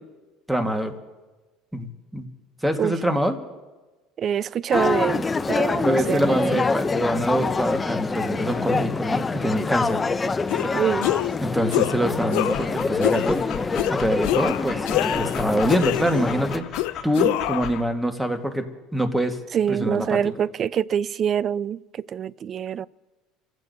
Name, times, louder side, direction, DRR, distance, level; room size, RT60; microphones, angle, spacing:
voice 1, 0.5-0.9 1.7-2.3 2.6-3.4 5.8-10.0 11.4-13.4 14.0-16.6 17.0-18.7 18.9-19.4 19.7-20.2, equal, 5° right, 1.6 m, -25 dB
voice 2, 4.2-6.6 10.6-11.1 19.5-22.9, right 8 dB, 40° right, 0.4 m, -25 dB
sound 1, 4.7-16.6, left 4 dB, 20° left, 0.5 m, -25 dB
sound 2, 10.5-10.7 11.0-11.4 11.7-12.0 12.3-12.7 13.0-13.3 13.8-13.9 14.2-15.4 15.7-16.3 16.7-17.7, left 18 dB, 80° left, 0.4 m, -25 dB
Dog, 12.4-17.8, left 9 dB, 45° left, 2.3 m, -37 dB
29.5 x 15.0 x 2.7 m
supercardioid pair, 105°, 0 cm